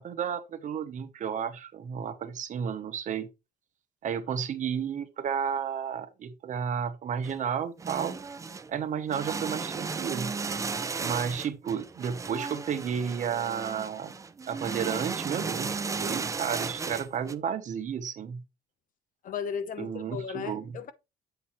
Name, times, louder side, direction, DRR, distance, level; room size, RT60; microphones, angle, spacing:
voice 1, 0.0-3.3 4.0-8.1 8.7-10.3 11.0-14.1 14.5-18.4 19.8-20.6, right 7 dB, 50° right, 1.0 m, -32 dB
sound 1, 7.2-7.4 7.8-8.7 9.1-17.3, right 4 dB, 20° right, 0.5 m, -35 dB
voice 2, 10.7-11.1 19.2-20.9, left 7 dB, 55° left, 0.8 m, -36 dB
7.9 x 2.7 x 5.6 m
cardioid pair, 110°, 17 cm